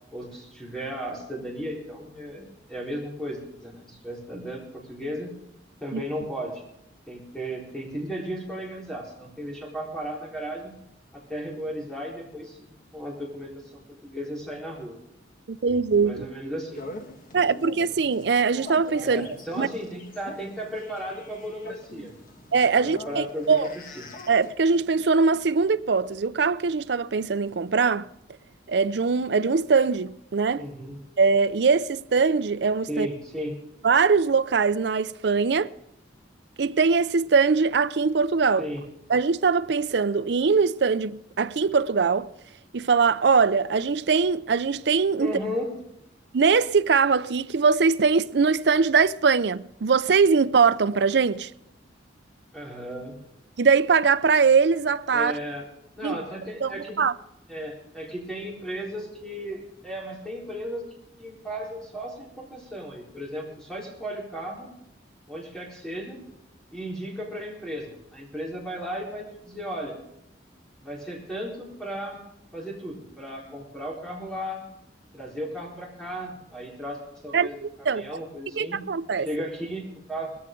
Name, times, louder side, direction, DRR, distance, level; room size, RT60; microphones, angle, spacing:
voice 1, 0.1-5.3 5.8-6.6 7.1-10.8 11.1-15.0 16.0-16.8 19.0-22.1 22.4-22.5 22.9-23.7 23.9-24.1 30.6-31.0 32.9-33.5 38.6-38.8 45.2-45.8 52.5-53.2 55.1-55.7 56.0-57.0 57.5-60.8 61.2-64.7 65.3-66.2 66.7-70.0 70.8-72.2 72.5-74.7 75.1-78.8 79.2-80.3, equal, 5° left, 4.0 m, -35 dB
voice 2, 15.5-16.3 17.3-19.3 19.6-19.7 22.5-23.7 24.3-28.1 28.7-30.6 31.2-33.1 33.8-35.7 36.6-38.7 39.1-42.3 42.7-45.3 46.3-51.5 53.6-55.4 56.0-56.2 56.6-57.1 77.3-78.2 78.6-79.3, right 5 dB, 60° right, 0.5 m, -22 dB
sound 1, 16.7-24.5, left 1 dB, 45° left, 1.5 m, -43 dB
19.5 x 14.5 x 3.8 m
head